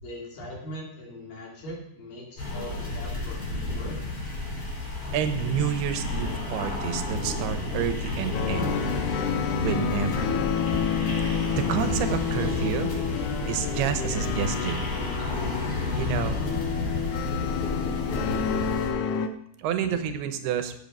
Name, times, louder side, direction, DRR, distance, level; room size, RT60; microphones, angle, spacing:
voice 1, 0.0-3.4 3.7-4.2 19.8-20.1, left 1 dB, 60° left, -2 dB, 4.6 m, -40 dB
sound 1, 2.4-18.9, left 2 dB, 35° left, 5.1 m, -31 dB
voice 2, 5.1-8.9 9.6-10.3 11.6-12.9 13.5-14.9 15.9-16.4 18.0-18.2 19.6-20.7, right 9 dB, 80° right, 9 dB, 3.0 m, -29 dB
sound 2, 8.3-19.3, left 8 dB, 85° left, 2.7 m, -30 dB
15.0 x 7.9 x 5.4 m, 0.70 s
omnidirectional pair, 4.6 m